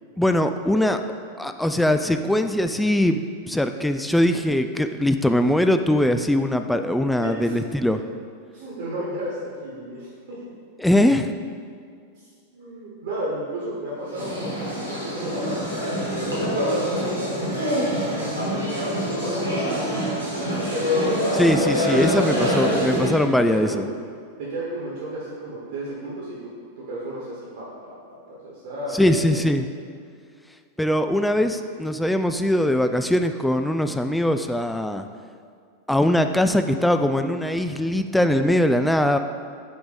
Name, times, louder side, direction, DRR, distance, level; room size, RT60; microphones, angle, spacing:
voice 1, 0.2-1.0 1.4-8.0 10.8-11.3 21.3-23.8 29.0-29.6 30.8-35.1 35.9-39.2, left 1 dB, 5° left, 7 dB, 0.3 m, -21 dB
voice 2, 7.2-7.6 8.5-10.4 12.2-17.6 18.2-18.8 19.2-19.8 20.1-21.1 22.1-22.5 22.8-22.9 23.4-23.8 24.4-26.5 26.8-29.4 31.2-31.3, right 1 dB, 55° right, -6 dB, 1.5 m, -33 dB
sound 1, 14.1-23.2, equal, 90° left, 1.6 m, -25 dB
7.8 x 4.6 x 4.1 m, 2.2 s
figure-of-eight pair, 90°, 0 cm